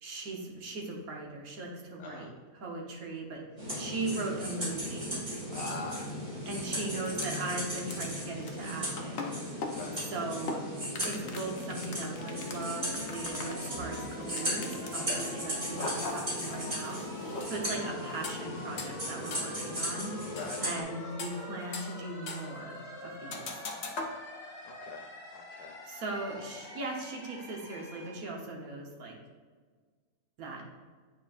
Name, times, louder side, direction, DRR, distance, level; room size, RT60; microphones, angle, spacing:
voice 1, 0.0-2.3 2.5-3.4 3.7-5.1 6.4-9.3 9.9-10.6 11.0-17.0 17.5-20.2 20.6-23.5 25.9-29.2 30.4-30.6, right 2 dB, 70° right, -1 dB, 1.5 m, -38 dB
sound 1, 3.6-20.8, equal, 35° right, 2.1 m, -37 dB
voice 2, 5.5-6.2 9.7-10.0 15.1-15.3 20.3-20.6 24.6-25.8, left 3 dB, 90° left, 2 dB, 1.1 m, -42 dB
sound 2, 6.6-6.7 7.1-7.5 7.8-15.1 15.6-17.5 18.2-18.4 18.8-18.9 19.3-19.4 20.4-20.7 21.1-22.0 22.3-22.6 23.3-24.1, left 3 dB, 55° left, 0.9 m, -40 dB
sound 3, 12.2-28.2, left 1 dB, 40° left, 1.6 m, -45 dB
8.8 x 4.5 x 2.4 m, 1.5 s
omnidirectional pair, 1.6 m